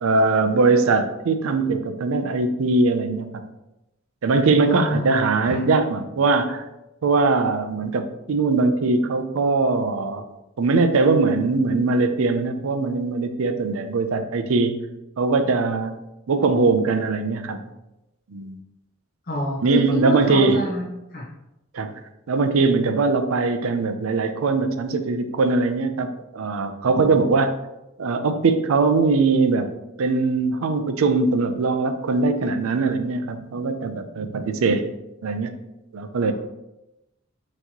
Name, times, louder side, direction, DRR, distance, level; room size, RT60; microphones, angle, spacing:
voice 1, 0.0-3.3 4.2-6.6 7.0-10.3 10.6-14.8 15.2-15.9 16.3-17.6 18.3-18.5 19.6-20.7 21.7-21.9 22.3-27.5 28.0-29.7 30.0-34.9 35.2-35.5 35.9-36.3, right 3 dB, 85° right, 8 dB, 0.5 m, -21 dB
voice 2, 4.6-5.2 5.5-5.6 19.3-21.2, equal, 45° left, -5 dB, 0.9 m, -27 dB
5.7 x 3.0 x 2.9 m, 0.93 s
head